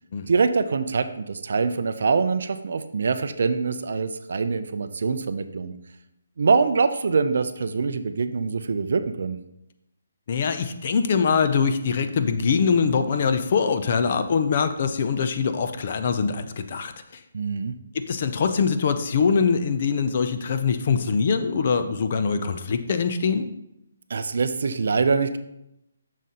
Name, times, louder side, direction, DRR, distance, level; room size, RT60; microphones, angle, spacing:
voice 1, 0.3-5.7 6.4-9.4 17.3-17.7 24.1-25.4, right 4 dB, 50° right, 10 dB, 0.4 m, -24 dB
voice 2, 10.3-17.2 17.9-23.5, left 5 dB, 30° left, 9 dB, 0.4 m, -23 dB
7.3 x 6.4 x 2.8 m, 0.82 s
hypercardioid pair, 175°, 0 cm